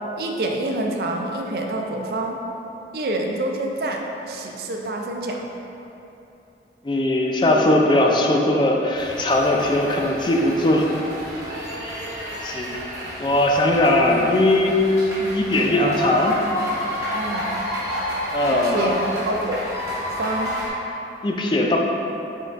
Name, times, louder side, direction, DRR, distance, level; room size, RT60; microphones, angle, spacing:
voice 1, 0.2-2.4 2.9-5.5 17.1-17.5 18.4-19.6 20.0-20.5, right 1 dB, 60° right, 1 dB, 0.4 m, -27 dB
voice 2, 6.8-10.9 12.4-12.8 13.2-14.8 15.2-16.3 18.3-18.9 21.2-21.8, left 1 dB, 25° left, 0 dB, 0.3 m, -19 dB
sound 1, 8.9-20.7, equal, 20° right, 1.0 m, -30 dB
5.2 x 3.8 x 2.5 m, 3.0 s
head